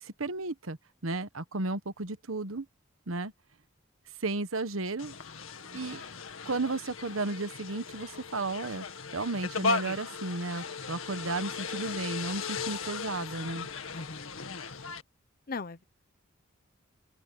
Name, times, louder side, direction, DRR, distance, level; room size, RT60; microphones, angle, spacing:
voice 1, 0.0-0.8 1.0-2.7 3.1-3.3 4.2-5.1 5.7-6.0 6.4-8.8 9.1-13.7, right 3 dB, 80° right, 1.3 m, -33 dB
sound 1, 5.0-15.0, left 4 dB, 85° left, 2.1 m, -37 dB
voice 2, 13.9-14.4 15.5-15.8, left 4 dB, 45° left, 0.8 m, -38 dB
open air
head